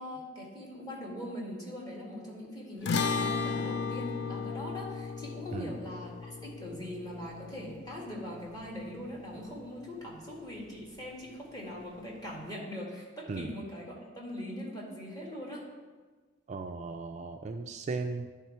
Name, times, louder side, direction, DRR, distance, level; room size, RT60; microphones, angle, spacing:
voice 1, 0.0-15.6, left 1 dB, 20° left, -4 dB, 1.7 m, -41 dB
sound 1, 2.9-9.4, left 4 dB, 55° left, 0.4 m, -35 dB
voice 2, 16.5-18.3, right 3 dB, 35° right, 5 dB, 0.3 m, -36 dB
11.0 x 3.6 x 4.3 m, 1.4 s
head